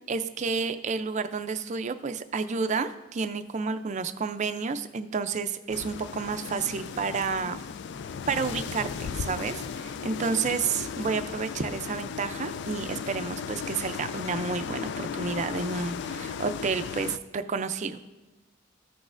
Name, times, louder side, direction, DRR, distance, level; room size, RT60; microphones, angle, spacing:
voice 1, 0.1-7.6 8.3-18.0, right 5 dB, 35° right, 10 dB, 0.4 m, -30 dB
sound 1, 5.7-17.2, left 6 dB, 60° left, 0.3 m, -36 dB
14.5 x 6.2 x 2.5 m, 1.1 s
head